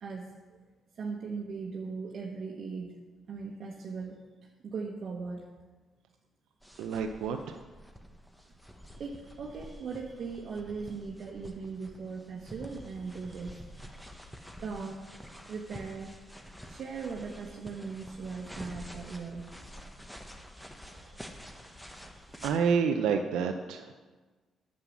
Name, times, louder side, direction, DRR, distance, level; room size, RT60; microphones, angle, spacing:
voice 1, 0.0-0.6 0.9-3.0 3.3-4.2 4.6-5.5 8.9-14.3 14.6-15.1 15.5-16.1 16.7-19.5 20.5-22.4, right 4 dB, 60° right, -1 dB, 1.3 m, -40 dB
sound 1, 6.6-22.6, equal, 5° left, 1.2 m, -48 dB
voice 2, 6.8-7.6 22.4-23.9, right 6 dB, 90° right, 5 dB, 0.6 m, -28 dB
9.3 x 7.6 x 7.3 m, 1.3 s
cardioid pair, 90°, 0 cm